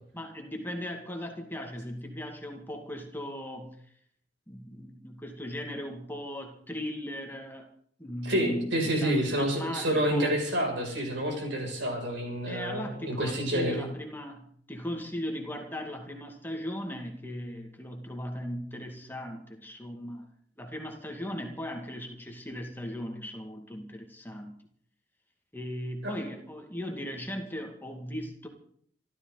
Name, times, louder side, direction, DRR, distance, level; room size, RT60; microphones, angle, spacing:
voice 1, 0.1-3.8 4.5-7.7 8.0-10.4 12.5-20.3 20.6-24.6 25.5-28.5, equal, 10° left, 2 dB, 2.1 m, -38 dB
voice 2, 8.2-13.9 26.0-26.1, right 1 dB, 70° right, 1 dB, 6.7 m, -28 dB
27.0 x 13.0 x 4.0 m, 0.63 s
head